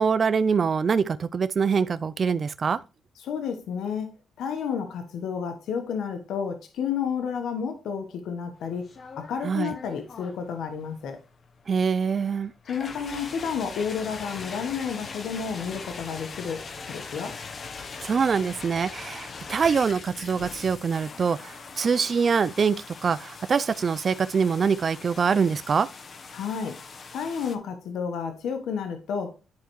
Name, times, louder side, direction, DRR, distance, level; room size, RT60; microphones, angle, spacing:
voice 1, 0.0-2.8 9.4-9.7 11.7-12.5 18.0-25.9, right 6 dB, 40° right, 0.3 m, -24 dB
voice 2, 3.2-8.9 9.2-11.2 12.7-17.4 26.3-26.8 27.1-29.5, left 7 dB, 75° left, 1.1 m, -31 dB
sound 1, 8.6-27.6, left 4 dB, 45° left, 0.9 m, -41 dB
10.5 x 4.5 x 3.0 m
cardioid pair, 90°, 0 cm